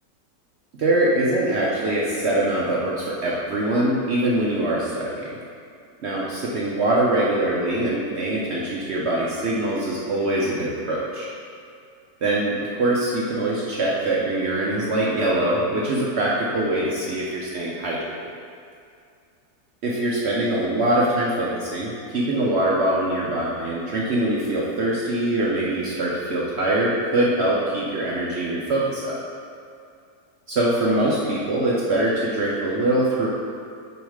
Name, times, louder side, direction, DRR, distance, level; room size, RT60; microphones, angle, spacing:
voice 1, 0.8-5.3 6.0-11.3 12.2-18.3 19.8-29.2 30.5-33.3, right 1 dB, 60° right, -5 dB, 0.7 m, -23 dB
6.2 x 3.1 x 4.9 m, 2.4 s
omnidirectional pair, 1.8 m